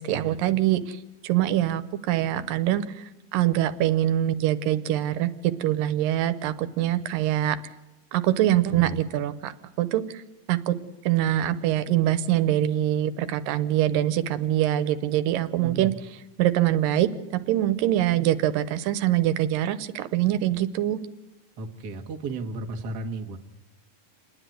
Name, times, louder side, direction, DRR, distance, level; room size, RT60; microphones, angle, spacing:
voice 1, 0.0-3.0 3.3-7.6 8.1-9.5 9.8-10.2 10.5-10.8 11.1-15.9 16.4-21.0, right 12 dB, 85° right, 12 dB, 2.5 m, -24 dB
voice 2, 21.6-23.4, right 3 dB, 45° right, 3 dB, 1.5 m, -34 dB
28.5 x 10.0 x 9.2 m, 1.0 s
omnidirectional pair, 3.9 m